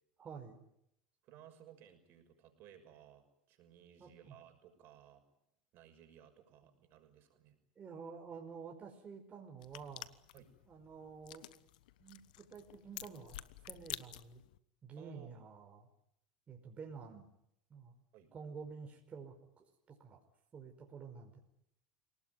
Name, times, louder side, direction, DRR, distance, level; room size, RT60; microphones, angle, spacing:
voice 1, 0.2-0.6 4.0-4.4 7.8-10.1 10.7-11.4 12.0-13.4 13.7-14.4 14.8-15.9 16.5-17.3 17.7-17.9 18.3-20.2 20.5-21.4, right 5 dB, 30° right, 2 dB, 5.2 m, -50 dB
voice 2, 1.2-5.2 5.7-7.6 10.3-10.5 15.0-15.3 18.1-18.3, right 10 dB, 55° right, 6 dB, 6.2 m, -59 dB
sound 1, 9.6-14.6, left 15 dB, 80° left, 1.1 m, -50 dB
27.5 x 19.0 x 9.6 m, 0.79 s
supercardioid pair, 95°, 4 cm